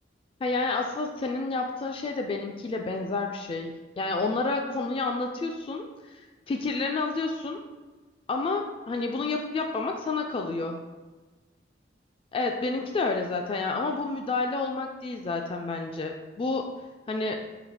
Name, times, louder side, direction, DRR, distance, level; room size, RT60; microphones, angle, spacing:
voice 1, 0.4-7.6 8.3-10.8 12.3-16.7 17.1-17.4, left 3 dB, 30° left, 3 dB, 0.3 m, -30 dB
4.0 x 2.7 x 4.7 m, 1.3 s
head